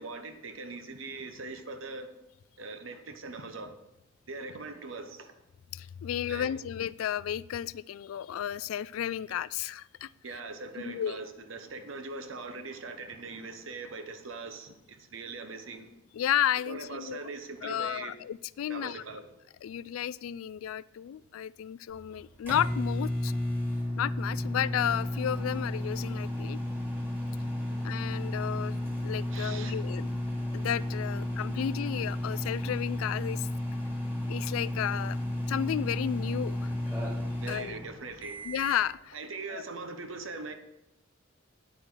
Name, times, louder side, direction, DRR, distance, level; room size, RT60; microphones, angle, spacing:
voice 1, 0.0-2.1 2.6-3.7 4.3-5.3 6.3-6.5 10.2-15.9 16.6-18.2 18.7-19.3 27.7-27.8 29.3-29.8 31.2-31.3 37.4-38.5 39.1-40.5, right 3 dB, 75° right, 7 dB, 1.1 m, -41 dB
voice 2, 5.7-10.1 10.8-11.2 16.1-17.2 17.6-19.0 19.6-23.3 24.0-26.6 27.8-30.1 30.5-33.5 34.3-35.2 35.5-36.7 37.5-37.7 38.4-39.2 39.5-39.6, left 10 dB, 90° left, 20 dB, 0.3 m, -33 dB
sound 1, 21.9-38.8, left 1 dB, 10° right, 2.8 m, -33 dB
9.2 x 8.9 x 3.9 m, 0.89 s
head